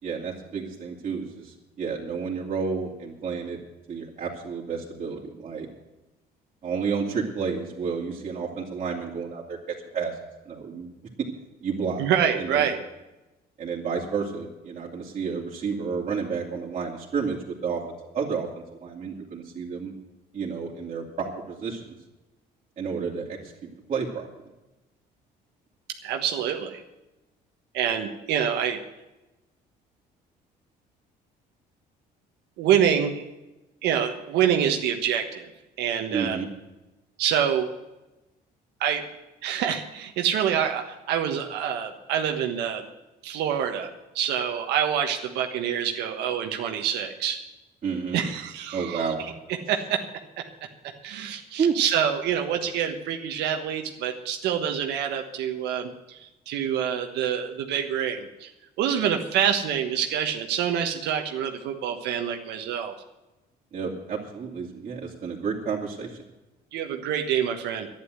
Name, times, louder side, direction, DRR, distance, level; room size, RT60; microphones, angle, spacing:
voice 1, 0.0-3.6 3.9-5.7 6.6-10.2 10.5-10.9 11.2-11.3 11.6-12.0 12.4-12.7 13.6-17.8 18.1-19.9 20.3-21.9 22.8-23.5 23.9-24.3 36.1-36.5 47.8-48.2 48.7-49.2 51.6-51.8 63.7-66.2, right 5 dB, 40° right, -6 dB, 2.7 m, -30 dB
voice 2, 12.0-12.8 26.0-26.8 27.7-28.8 32.6-33.2 33.8-35.5 35.8-36.4 37.2-37.7 38.8-39.0 39.4-42.9 43.2-43.9 44.1-47.4 48.1-49.1 49.7-50.0 50.4-50.5 51.0-58.5 58.8-62.9 66.7-67.9, right 9 dB, 85° right, 4 dB, 1.4 m, -26 dB
11.5 x 10.5 x 8.0 m, 1.0 s
cardioid pair, 110°, 17 cm